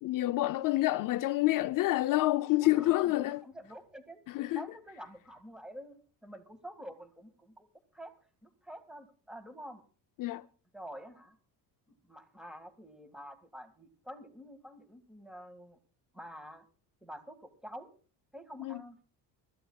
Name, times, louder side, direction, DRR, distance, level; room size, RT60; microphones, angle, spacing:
voice 1, 0.0-3.4 4.3-4.6 10.2-10.5 18.6-18.8, left 17 dB, 55° left, 0.5 m, -28 dB
voice 2, 2.6-4.2 4.6-7.7 7.9-8.1 8.4-9.8 10.7-11.4 12.0-15.8 16.1-16.6 17.0-17.9 18.3-19.0, equal, ahead, 1.9 m, -48 dB
25.5 x 14.0 x 2.3 m
cardioid pair, 155°, 38 cm